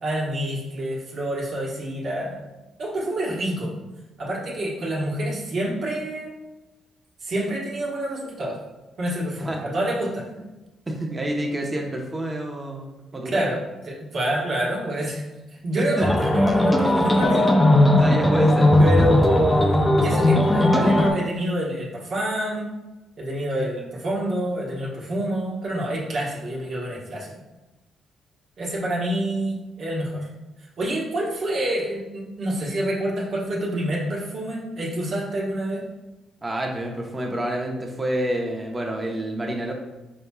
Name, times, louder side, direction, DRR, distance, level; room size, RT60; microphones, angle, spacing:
voice 1, 0.0-2.4 2.8-3.7 4.2-6.3 7.2-8.6 9.0-10.2 13.2-15.2 15.5-17.5 18.8-22.7 23.2-27.3 28.6-30.3 30.8-35.8, right 1 dB, 55° right, -4 dB, 1.3 m, -27 dB
voice 2, 10.9-13.6 15.8-16.0 18.0-18.7 36.4-39.7, right 1 dB, 20° right, 0 dB, 0.9 m, -28 dB
sound 1, 16.0-21.1, left 1 dB, 10° left, 0.5 m, -18 dB
5.3 x 4.3 x 2.3 m, 1.1 s
cardioid pair, 90°, 0 cm